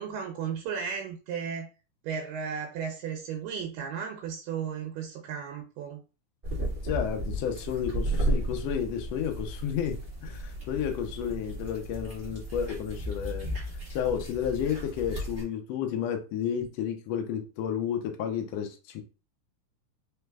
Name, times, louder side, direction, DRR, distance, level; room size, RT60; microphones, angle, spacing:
voice 1, 0.0-1.7 2.0-6.0, right 7 dB, 90° right, 2.3 m, -35 dB
sound 1, 6.4-15.4, right 1 dB, 35° right, 0.8 m, -34 dB
voice 2, 6.8-13.5 13.9-19.0, left 8 dB, 85° left, 1.4 m, -31 dB
4.9 x 3.3 x 2.3 m
omnidirectional pair, 3.8 m